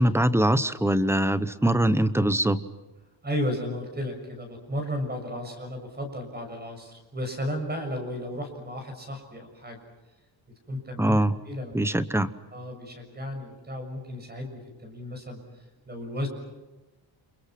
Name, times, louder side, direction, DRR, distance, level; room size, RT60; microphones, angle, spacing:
voice 1, 0.0-2.6 11.0-11.4 11.7-12.3, right 1 dB, 5° right, 14 dB, 0.9 m, -22 dB
voice 2, 3.2-9.8 10.7-11.7 12.5-15.4 15.9-16.3, equal, 20° right, 4 dB, 6.7 m, -34 dB
30.0 x 28.0 x 6.0 m, 1.1 s
wide cardioid pair, 170°, 46 cm